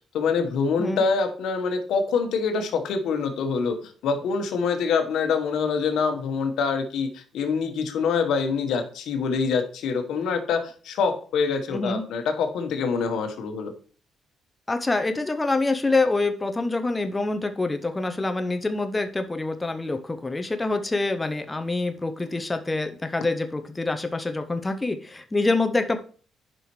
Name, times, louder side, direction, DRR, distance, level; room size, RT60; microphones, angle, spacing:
voice 1, 0.1-13.7, left 5 dB, 80° left, 6 dB, 1.2 m, -25 dB
voice 2, 11.7-12.0 14.7-26.0, left 3 dB, 20° left, 7 dB, 0.6 m, -26 dB
8.9 x 5.6 x 3.1 m, 0.41 s
cardioid pair, 90°, 0 cm